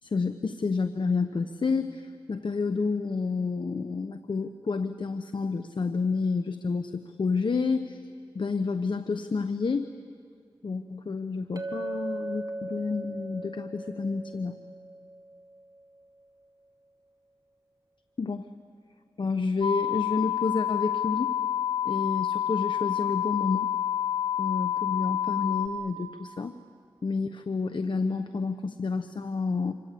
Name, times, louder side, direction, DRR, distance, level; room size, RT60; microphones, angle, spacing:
voice 1, 0.0-8.0 8.3-9.9 10.6-14.6 18.2-18.5 19.2-21.3 21.8-23.7 24.4-26.5 27.0-29.7, left 4 dB, 65° left, 9 dB, 0.9 m, -29 dB
Chink clink, 11.6-16.0, right 2 dB, 45° right, 2.8 m, -38 dB
sound 1, 19.6-25.7, left 10 dB, 85° left, 2.0 m, -28 dB
27.5 x 24.5 x 8.5 m, 2.1 s
cardioid pair, 45°, 9 cm